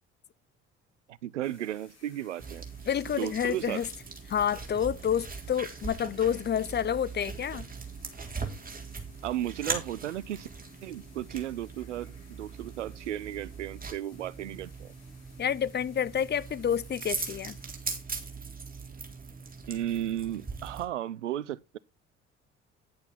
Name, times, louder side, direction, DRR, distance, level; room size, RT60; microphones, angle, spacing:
voice 1, 1.1-2.6 3.2-3.8 9.2-10.5 10.8-14.9 19.7-21.8, right 12 dB, 85° right, 0.5 m, -34 dB
sound 1, 1.4-17.7, left 5 dB, 45° left, 5.2 m, -60 dB
sound 2, 2.4-20.8, right 4 dB, 25° right, 3.6 m, -40 dB
voice 2, 2.9-3.9 4.3-7.7 15.4-17.6, left 9 dB, 30° left, 0.7 m, -29 dB
10.5 x 8.0 x 4.0 m
figure-of-eight pair, 50°, 35 cm